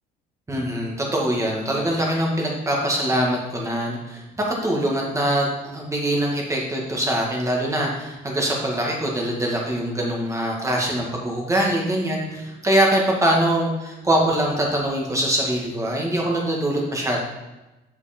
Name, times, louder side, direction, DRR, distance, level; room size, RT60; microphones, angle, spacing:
voice 1, 0.5-17.2, right 1 dB, 15° right, -2 dB, 1.9 m, -23 dB
6.5 x 5.5 x 4.4 m, 1.0 s
cardioid pair, 110°, 17 cm